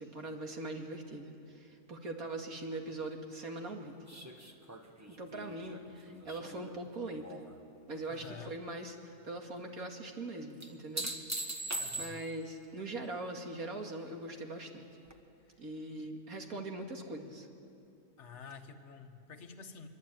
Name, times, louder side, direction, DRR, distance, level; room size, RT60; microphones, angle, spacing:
voice 1, 0.0-3.9 5.1-7.4 7.9-11.1 12.0-14.8 15.6-17.5, right 2 dB, 65° right, 2 dB, 2.7 m, -41 dB
sound 1, 4.1-7.5 7.9-8.5 10.6-12.5 15.1-15.2, right 1 dB, 10° right, 1.4 m, -42 dB
voice 2, 8.1-8.6 11.8-12.3 16.0-16.1 18.2-19.9, left 6 dB, 50° left, 6 dB, 1.6 m, -49 dB
24.5 x 23.5 x 9.2 m, 2.7 s
omnidirectional pair, 1.7 m